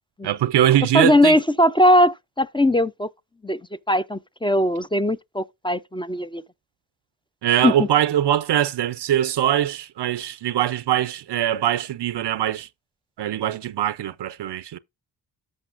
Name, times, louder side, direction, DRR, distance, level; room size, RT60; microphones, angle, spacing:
voice 1, 0.2-1.4 7.4-12.7 13.2-14.8, right 11 dB, 70° right, 0.5 m, -22 dB
voice 2, 0.9-3.1 3.4-3.6 3.9-6.4 7.6-7.9, left 1 dB, 10° left, 0.4 m, -19 dB
14.0 x 5.3 x 2.5 m
cardioid pair, 40°, 42 cm